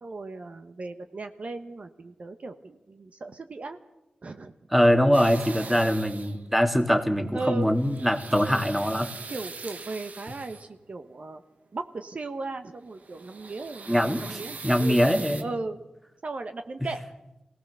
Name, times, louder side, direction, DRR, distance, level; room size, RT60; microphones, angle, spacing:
voice 1, 0.0-3.8 4.2-4.5 7.3-7.7 9.3-11.4 11.7-15.8 16.2-17.0, right 3 dB, 55° right, 7 dB, 1.0 m, -36 dB
voice 2, 4.7-9.1 13.9-15.4, equal, 5° right, 7 dB, 1.8 m, -23 dB
sound 1, 5.1-6.5 7.6-10.8 12.8-15.4, right 4 dB, 70° right, 1.4 m, -42 dB
23.5 x 17.5 x 6.8 m, 0.96 s
wide cardioid pair, 105°, 3 cm